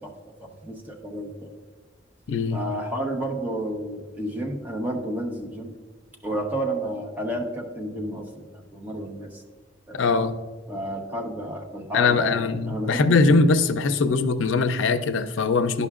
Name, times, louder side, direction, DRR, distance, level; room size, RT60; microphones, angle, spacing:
voice 1, 0.4-1.5 2.5-5.7 6.2-9.4 9.9-10.2 10.7-13.3, right 1 dB, 10° right, 0 dB, 0.8 m, -31 dB
voice 2, 2.3-2.6 9.9-10.3 11.9-15.9, left 4 dB, 90° left, 11 dB, 0.4 m, -21 dB
11.0 x 5.5 x 2.4 m, 1.4 s
head